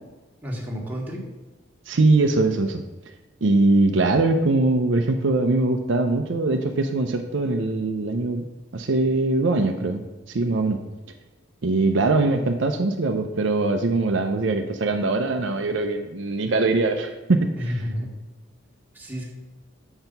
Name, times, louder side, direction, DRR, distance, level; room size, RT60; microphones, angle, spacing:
voice 1, 0.4-1.2 17.5-18.1 18.9-19.3, equal, 10° right, -3 dB, 1.5 m, -30 dB
voice 2, 1.9-2.8 3.4-8.4 8.7-10.0 10.3-10.8 11.6-17.7, right 2 dB, 65° right, 5 dB, 0.6 m, -22 dB
6.9 x 4.5 x 5.3 m, 1.2 s
head